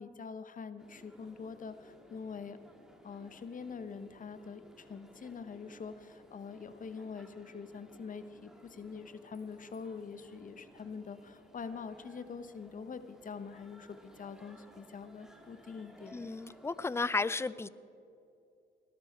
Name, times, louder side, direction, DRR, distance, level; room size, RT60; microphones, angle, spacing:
voice 1, 0.0-2.6 3.0-16.3, left 5 dB, 40° left, 12 dB, 1.0 m, -45 dB
sound 1, 0.8-17.2, equal, 5° right, 2.1 m, -58 dB
voice 2, 16.1-17.7, left 3 dB, 15° left, 18 dB, 0.5 m, -33 dB
19.0 x 12.5 x 4.4 m, 2.7 s
cardioid pair, 90°, 20 cm